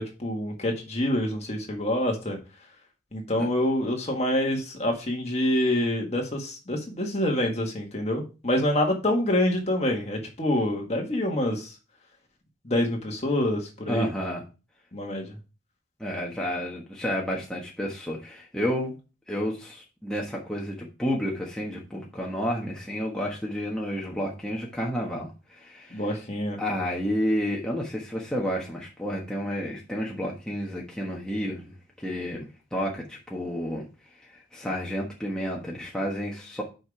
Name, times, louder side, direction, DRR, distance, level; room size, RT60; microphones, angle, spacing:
voice 1, 0.0-2.4 3.1-11.7 12.6-14.1 14.9-15.4 25.9-26.6, left 1 dB, 35° left, 1 dB, 1.7 m, -26 dB
voice 2, 13.9-14.4 16.0-18.9 19.3-26.1 26.6-32.5 32.7-33.9 34.3-36.6, equal, 5° left, -3 dB, 1.3 m, -31 dB
6.4 x 5.0 x 4.8 m, 0.31 s
head